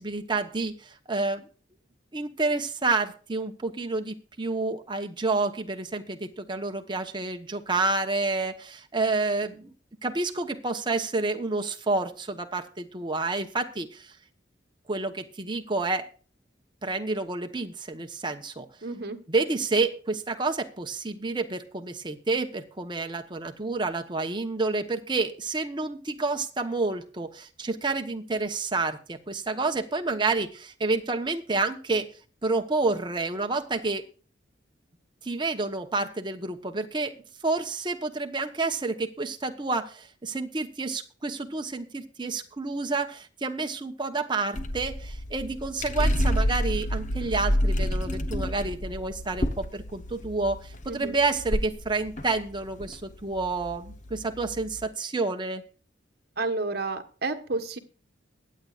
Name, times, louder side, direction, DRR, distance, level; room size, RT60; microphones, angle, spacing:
voice 1, 0.0-1.5 2.1-9.7 10.0-14.1 14.9-16.1 16.8-18.7 19.3-32.1 32.4-34.0 35.2-55.6, right 3 dB, 25° right, 5 dB, 1.0 m, -29 dB
voice 2, 18.8-19.2 50.9-51.2 56.4-57.8, right 3 dB, 55° right, 7 dB, 1.3 m, -31 dB
sound 1, 44.5-54.9, equal, 40° left, 0.9 m, -29 dB
22.5 x 8.5 x 2.5 m, 0.38 s
head